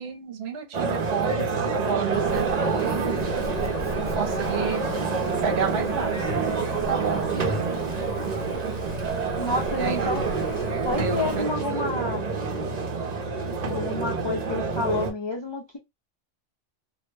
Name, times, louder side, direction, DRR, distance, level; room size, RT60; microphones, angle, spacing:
voice 1, 0.0-3.0 4.0-4.8 5.4-6.3 6.6-7.9 9.8-10.1 10.7-11.5, right 7 dB, 65° right, 0.9 m, -31 dB
sound 1, 0.7-15.1, right 4 dB, 45° right, 0.6 m, -27 dB
Cricket / Motor vehicle (road), 2.1-11.4, left 3 dB, 70° left, 0.8 m, -39 dB
sound 2, 2.2-2.7 3.1-8.4, equal, 15° right, 0.8 m, -43 dB
voice 2, 9.4-10.2 10.8-12.2 13.6-15.8, left 2 dB, 45° left, 0.3 m, -29 dB
2.2 x 2.1 x 3.1 m
omnidirectional pair, 1.2 m